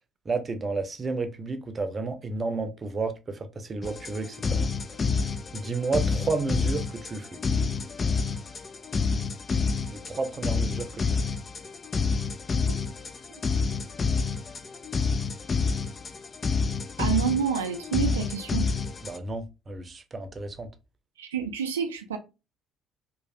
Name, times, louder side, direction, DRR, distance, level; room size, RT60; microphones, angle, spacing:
voice 1, 0.3-4.7 5.5-7.4 9.9-11.2 19.0-20.7, right 3 dB, 35° right, 0.6 m, -31 dB
sound 1, 3.8-19.2, left 5 dB, 35° left, 0.4 m, -28 dB
voice 2, 17.0-18.7 21.2-22.2, right 7 dB, 85° right, 0.4 m, -28 dB
3.1 x 2.3 x 2.6 m
hypercardioid pair, 50°, 0 cm